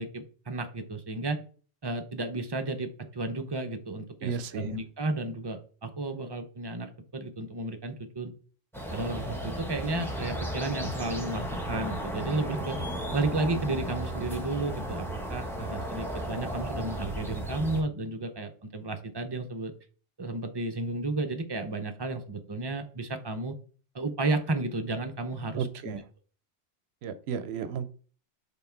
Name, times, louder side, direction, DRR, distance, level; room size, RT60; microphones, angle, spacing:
voice 1, 0.0-1.4 1.8-8.3 8.9-12.8 13.1-19.7 20.2-23.5 23.9-26.0, right 2 dB, 30° right, 0.5 m, -33 dB
voice 2, 4.2-4.8 25.6-26.0 27.0-27.9, right 7 dB, 70° right, 0.8 m, -33 dB
sound 1, 8.7-17.8, equal, ahead, 1.0 m, -34 dB
5.7 x 3.8 x 4.4 m
omnidirectional pair, 1.2 m